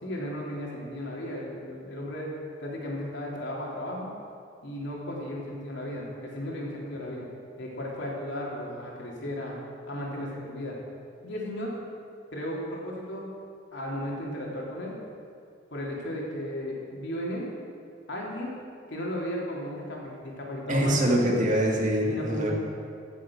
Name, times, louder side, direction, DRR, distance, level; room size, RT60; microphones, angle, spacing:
voice 1, 0.0-2.3 2.6-4.1 4.6-7.3 7.6-9.5 9.9-10.7 11.2-11.7 12.3-13.3 13.7-14.9 15.7-17.5 18.1-18.5 18.9-21.0 22.1-22.5, left 1 dB, 65° left, -3 dB, 3.1 m, -35 dB
voice 2, 20.7-22.5, equal, 40° right, -1 dB, 2.1 m, -24 dB
15.5 x 7.6 x 6.5 m, 2.3 s
head